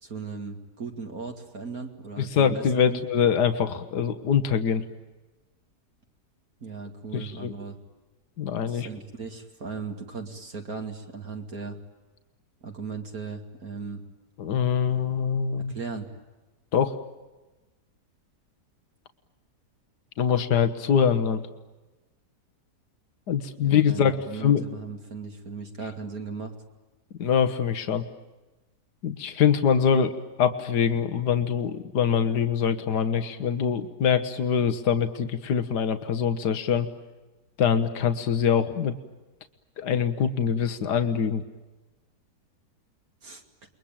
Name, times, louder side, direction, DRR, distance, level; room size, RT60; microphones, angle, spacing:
voice 1, 0.0-3.0 6.6-7.8 8.7-11.8 12.6-14.0 15.6-16.1 23.6-26.5 43.2-43.4, right 4 dB, 60° right, 3 dB, 2.6 m, -37 dB
voice 2, 2.2-4.8 7.1-7.5 8.4-8.9 14.4-15.7 16.7-16.9 20.2-21.4 23.3-24.2 24.4-24.6 27.2-28.0 29.0-36.9 37.6-38.9 39.8-41.4, left 7 dB, 80° left, 10 dB, 1.8 m, -24 dB
29.5 x 22.5 x 8.9 m, 1.2 s
omnidirectional pair, 1.8 m